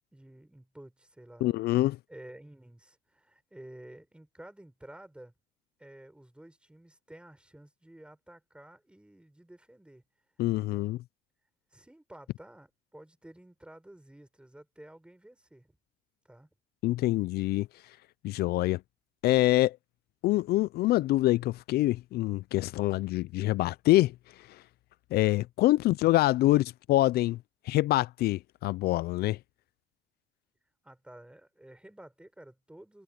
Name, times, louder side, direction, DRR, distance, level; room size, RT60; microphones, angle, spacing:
voice 1, 0.1-5.3 5.8-10.0 10.6-10.9 11.7-15.8 16.2-16.5 30.8-33.0, right 1 dB, 5° right, 5.7 m, -52 dB
voice 2, 1.4-2.0 10.4-11.0 16.8-17.7 18.2-18.8 19.2-19.8 20.2-24.6 25.1-27.4 27.6-29.4, left 17 dB, 70° left, 0.4 m, -25 dB
cardioid pair, 110°, 17 cm